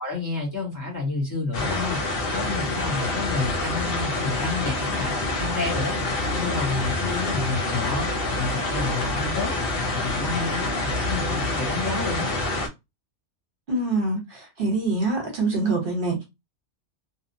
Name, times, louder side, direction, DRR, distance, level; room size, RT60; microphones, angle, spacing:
voice 1, 0.0-2.0 2.3-5.9 6.3-8.1 8.4-9.5 9.9-12.3, left 3 dB, 20° left, 0.8 m, -30 dB
sound 1, 1.5-12.7, left 2 dB, 60° left, 0.8 m, -27 dB
voice 2, 13.7-16.2, right 2 dB, 55° right, 1.1 m, -25 dB
2.8 x 2.0 x 2.6 m
omnidirectional pair, 1.2 m